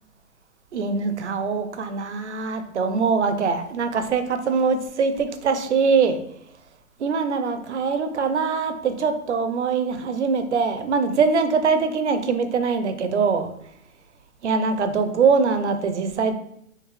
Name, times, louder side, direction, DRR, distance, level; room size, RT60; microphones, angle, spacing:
voice 1, 0.7-6.2 7.0-13.5 14.4-16.3, right 5 dB, 55° right, 9 dB, 0.6 m, -23 dB
6.6 x 2.6 x 3.0 m, 0.75 s
hypercardioid pair, 170°, 43 cm